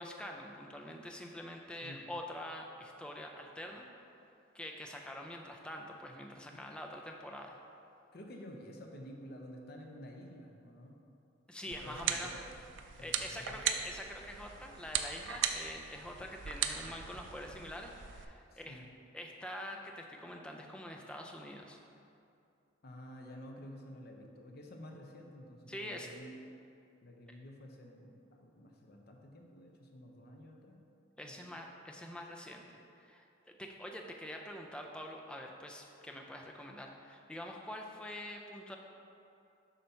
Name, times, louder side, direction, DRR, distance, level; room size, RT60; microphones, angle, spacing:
voice 1, 0.0-3.9 4.5-7.6 11.5-12.3 13.0-18.8 19.1-21.8 25.7-26.1 31.2-38.8, left 1 dB, 5° left, 1 dB, 0.4 m, -45 dB
voice 2, 8.1-11.0 11.8-12.4 13.0-13.8 18.5-18.9 22.8-26.5 27.0-30.8 31.3-31.5, equal, 55° left, 1 dB, 0.7 m, -51 dB
sound 1, 11.7-18.2, right 8 dB, 75° right, 0.4 m, -38 dB
7.5 x 2.8 x 5.5 m, 2.6 s
head